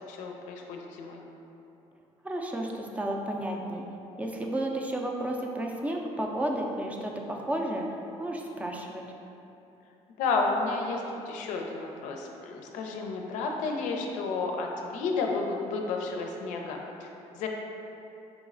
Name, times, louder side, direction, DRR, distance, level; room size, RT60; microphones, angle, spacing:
voice 1, 0.1-1.2 10.2-17.5, left 3 dB, 90° left, 2 dB, 0.5 m, -32 dB
voice 2, 2.2-3.8 4.2-7.9 8.2-9.0, right 1 dB, 10° right, 1 dB, 0.4 m, -32 dB
4.8 x 3.0 x 2.5 m, 3.0 s
cardioid pair, 105°, 12 cm